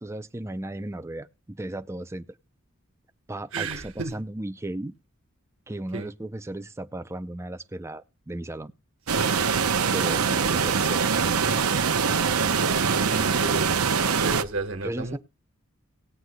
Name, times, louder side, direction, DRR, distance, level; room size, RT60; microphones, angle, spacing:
voice 1, 0.0-2.3 3.3-4.9 5.7-8.7 9.9-11.4 14.8-15.2, right 1 dB, 10° right, 0.5 m, -35 dB
voice 2, 3.5-4.2 5.9-6.1 9.1-9.4 12.8-13.7 14.2-15.2, right 3 dB, 60° right, 1.4 m, -33 dB
sound 1, 9.1-14.4, right 6 dB, 85° right, 0.8 m, -23 dB
19.0 x 8.0 x 2.2 m
head